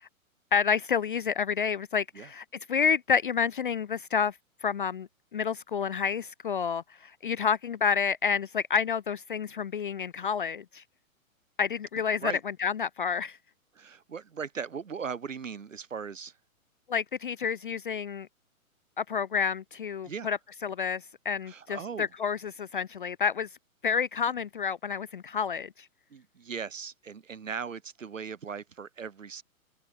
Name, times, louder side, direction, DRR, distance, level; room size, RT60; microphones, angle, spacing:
voice 1, 0.5-10.8 11.6-13.4 16.9-18.3 19.0-23.5 23.8-25.9, left 6 dB, 40° left, 0.5 m, -29 dB
voice 2, 13.7-16.4 20.0-20.3 21.5-22.1 26.1-29.4, right 6 dB, 60° right, 6.5 m, -38 dB
figure-of-eight pair, 120°, 42 cm